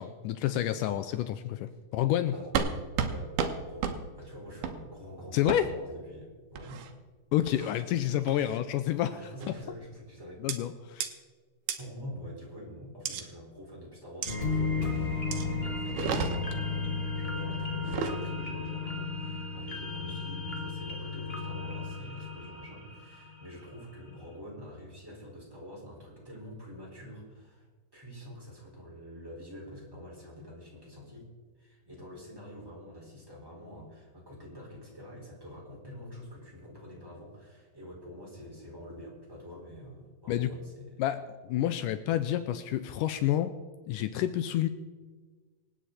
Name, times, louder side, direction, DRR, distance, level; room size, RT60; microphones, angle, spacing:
voice 1, 0.0-2.4 5.3-5.7 7.3-9.1 9.5-9.6 10.4-11.1 40.3-40.5 41.0-43.5 43.9-44.7, left 12 dB, 80° left, 11 dB, 2.1 m, -29 dB
sound 1, 2.6-2.7 3.0-3.1 3.4-3.5 3.8-4.0 4.6-4.8 5.5-5.6 6.6-6.9 7.5-7.8 8.3-8.6 9.4-9.7 10.5-10.6 11.0-11.1 11.7-11.8 13.1-13.2 14.2-14.4 15.3-15.5 15.9-16.6 17.8-18.2, right 7 dB, 75° right, 2.6 m, -32 dB
voice 2, 3.1-6.8 9.1-10.4 11.8-27.7 27.9-31.3 31.6-41.0, equal, 5° right, -4 dB, 4.7 m, -46 dB
sound 2, 14.3-23.6 24.0-24.1, left 4 dB, 55° left, 0.6 m, -34 dB
25.5 x 9.2 x 4.2 m, 1.4 s
omnidirectional pair, 3.8 m